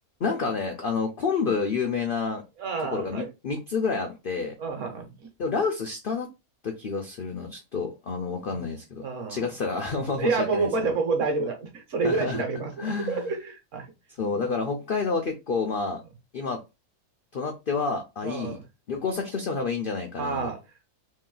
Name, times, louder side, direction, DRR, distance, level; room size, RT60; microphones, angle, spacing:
voice 1, 0.2-2.4 2.9-4.5 5.4-6.3 6.6-11.0 12.0-12.4 12.8-13.3 14.2-16.0 16.3-16.6 17.3-18.6 18.9-20.5, left 4 dB, 90° left, 0.4 m, -29 dB
voice 2, 2.6-3.3 4.6-5.2 8.5-8.6 9.0-9.5 10.2-13.9 14.3-14.4 18.2-18.6 20.2-20.6, right 4 dB, 55° right, 1.2 m, -28 dB
3.1 x 2.5 x 3.8 m
omnidirectional pair, 1.7 m